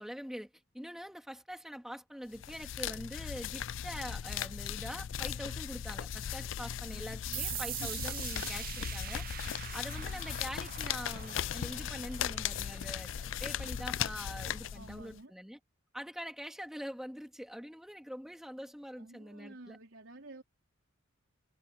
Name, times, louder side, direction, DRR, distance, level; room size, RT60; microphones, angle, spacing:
voice 1, 0.0-9.2 9.7-13.1 13.4-15.6 15.9-19.8, equal, ahead, 3.0 m, -44 dB
sound 1, 2.3-15.2, left 9 dB, 75° left, 0.4 m, -38 dB
voice 2, 6.7-8.0 9.9-10.3 14.7-15.3 19.0-20.4, right 2 dB, 80° right, 4.0 m, -52 dB
sound 2, 7.3-14.7, right 13 dB, 45° right, 0.6 m, -44 dB
head